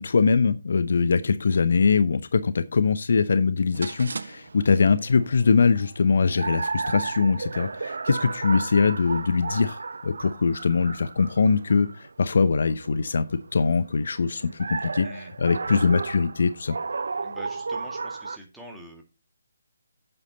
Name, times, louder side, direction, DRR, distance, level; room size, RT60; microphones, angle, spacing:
voice 1, 0.0-15.1 15.4-16.7, left 5 dB, 50° left, 14 dB, 0.7 m, -22 dB
sound 1, 3.7-18.4, right 4 dB, 60° right, 0.5 m, -34 dB
voice 2, 17.2-19.0, equal, ahead, -1 dB, 1.9 m, -44 dB
9.6 x 7.8 x 4.0 m, 0.27 s
figure-of-eight pair, 145°, 0 cm